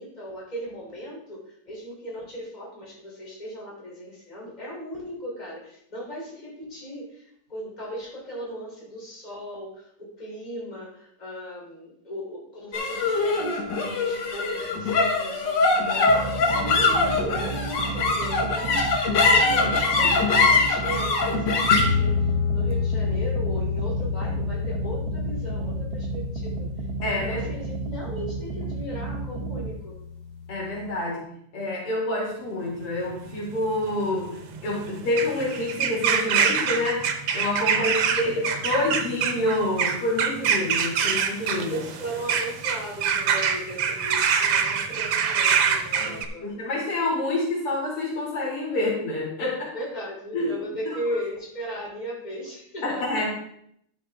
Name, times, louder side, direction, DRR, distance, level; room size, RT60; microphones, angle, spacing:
voice 1, 0.0-26.7 27.2-30.0 37.7-38.6 41.5-46.5 49.7-53.3, equal, 20° left, -4 dB, 3.6 m, -37 dB
sound 1, 12.7-29.3, left 4 dB, 60° left, 2.0 m, -24 dB
sound 2, 16.1-29.7, right 4 dB, 55° right, 1.3 m, -33 dB
voice 2, 27.0-27.4 30.5-31.3 31.5-34.3 34.6-41.7 46.0-49.7 50.3-50.5 50.9-51.0 52.8-53.3, left 2 dB, 80° left, -4 dB, 3.9 m, -27 dB
sound 3, 32.9-46.2, right 7 dB, 85° right, 1.9 m, -25 dB
12.0 x 6.7 x 3.7 m, 0.70 s
omnidirectional pair, 2.4 m